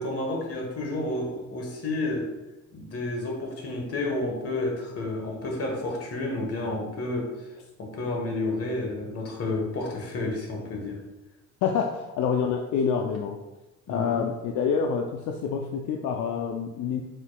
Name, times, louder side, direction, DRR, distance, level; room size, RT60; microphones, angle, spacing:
voice 1, 0.0-2.3 2.7-7.3 7.8-11.0 13.9-14.2, left 2 dB, 50° left, 1 dB, 1.2 m, -30 dB
voice 2, 11.6-13.4 13.9-17.0, left 6 dB, 80° left, 3 dB, 0.4 m, -27 dB
4.4 x 4.0 x 2.2 m, 1.0 s
cardioid pair, 90°, 30 cm